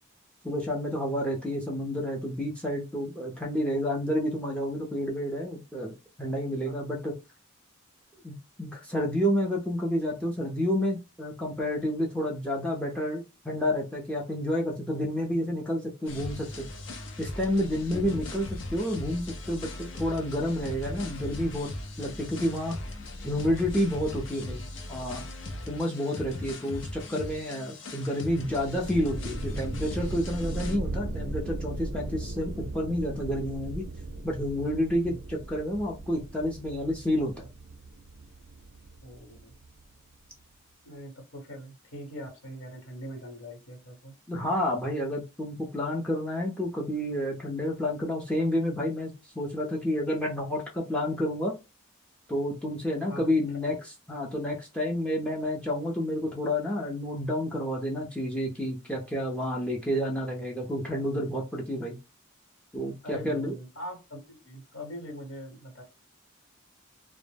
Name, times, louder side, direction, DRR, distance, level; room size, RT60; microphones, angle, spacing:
voice 1, 0.4-7.1 8.2-16.7 17.2-21.7 22.0-22.8 23.2-24.6 24.9-25.2 25.7-33.8 34.2-37.5 44.3-51.5 52.3-62.0 62.7-63.5, left 1 dB, 5° left, -2 dB, 0.4 m, -30 dB
sound 1, 16.1-30.8, left 2 dB, 65° left, 0.5 m, -39 dB
voice 2, 17.9-18.2 26.3-26.6 35.0-35.2 39.0-39.6 40.8-44.1 53.1-53.3 63.0-65.8, equal, 80° left, -1 dB, 1.2 m, -42 dB
sound 2, 28.4-39.8, right 2 dB, 60° right, 0.4 m, -38 dB
2.1 x 2.0 x 3.2 m, 0.28 s
head